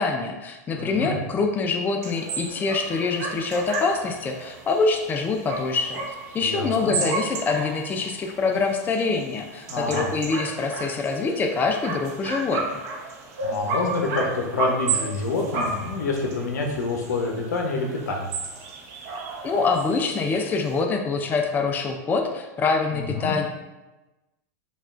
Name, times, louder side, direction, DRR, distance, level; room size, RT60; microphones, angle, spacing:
voice 1, 0.0-6.0 6.3-12.6 19.4-23.5, left 4 dB, 20° left, 3 dB, 0.4 m, -25 dB
voice 2, 0.8-1.2 6.4-7.0 9.7-10.1 13.4-18.3 22.9-23.4, left 3 dB, 85° left, 1 dB, 0.7 m, -27 dB
sound 1, 2.0-20.8, right 4 dB, 65° right, 0.8 m, -33 dB
5.2 x 2.4 x 2.4 m, 1.1 s
hypercardioid pair, 110°, 9 cm